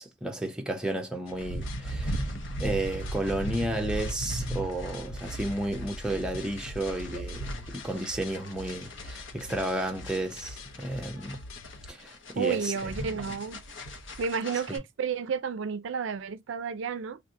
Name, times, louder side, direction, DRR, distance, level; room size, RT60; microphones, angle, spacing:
voice 1, 0.0-2.3 2.6-11.4 11.9-13.2, right 1 dB, 5° right, 0.5 m, -32 dB
sound 1, 1.3-11.9, left 3 dB, 90° left, 0.6 m, -46 dB
sound 2, 1.4-14.8, equal, 65° left, 0.9 m, -37 dB
voice 2, 12.4-13.6 14.2-17.2, right 6 dB, 65° right, 0.4 m, -31 dB
3.5 x 2.5 x 2.5 m
head